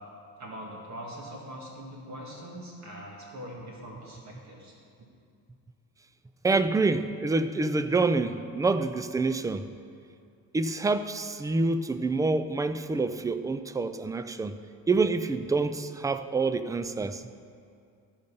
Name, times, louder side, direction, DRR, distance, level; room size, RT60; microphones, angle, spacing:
voice 1, 0.4-5.1, equal, 50° right, -2 dB, 1.9 m, -42 dB
voice 2, 6.4-9.6 10.5-14.6 14.9-17.2, right 3 dB, 10° right, 11 dB, 0.3 m, -27 dB
13.5 x 5.3 x 5.4 m, 2.4 s
cardioid pair, 95°, 36 cm